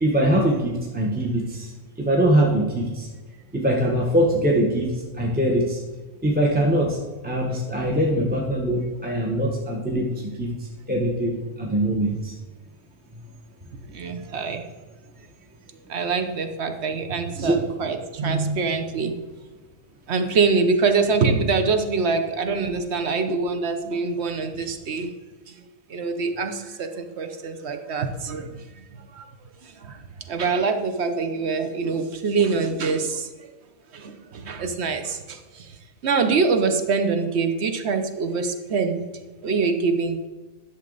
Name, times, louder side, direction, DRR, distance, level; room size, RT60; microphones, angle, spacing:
voice 1, 0.0-1.7 2.0-3.1 3.5-4.9 5.2-5.8 6.2-7.0 7.2-10.5 10.9-12.3 17.3-17.6, right 1 dB, 5° right, -2 dB, 1.0 m, -22 dB
voice 2, 13.9-14.6 15.9-19.1 20.1-25.1 25.9-28.6 29.1-29.3 29.6-30.0 30.3-33.3 33.9-35.7 36.0-39.0 39.4-40.3, right 4 dB, 55° right, 7 dB, 1.0 m, -24 dB
10.5 x 6.7 x 3.9 m, 1.3 s
omnidirectional pair, 1.5 m